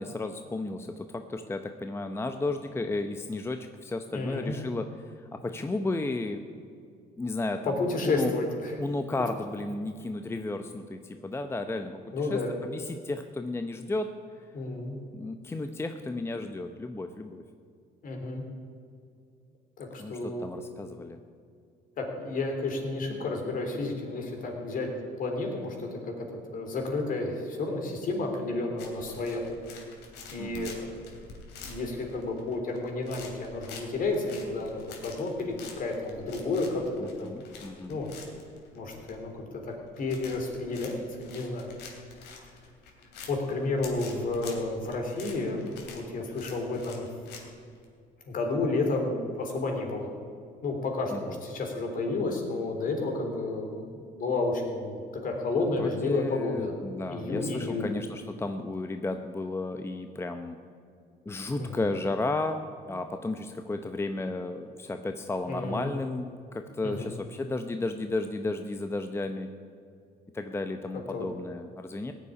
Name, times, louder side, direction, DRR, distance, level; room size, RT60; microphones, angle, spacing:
voice 1, 0.0-6.4 7.2-8.3 8.8-14.5 15.1-17.4 20.0-21.2 30.4-30.8 37.0-38.0 51.1-51.4 55.8-60.6 61.3-62.6 62.9-69.5 70.3-72.1, left 2 dB, 15° left, 7 dB, 0.7 m, -33 dB
voice 2, 4.1-4.5 7.6-8.8 12.1-12.5 14.5-15.0 18.0-18.4 19.8-20.4 22.0-24.9 25.2-26.3 26.5-29.4 30.3-30.9 31.6-37.3 37.9-38.1 38.7-41.7 42.2-42.3 43.3-47.1 48.3-50.1 50.6-56.7 57.1-57.9 61.6-61.8 65.5-65.9 66.8-67.1 70.9-71.3, left 3 dB, 55° left, 2 dB, 3.3 m, -31 dB
sound 1, 28.8-47.9, left 4 dB, 80° left, 2.8 m, -47 dB
17.0 x 7.1 x 9.7 m, 2.3 s
cardioid pair, 110°, 17 cm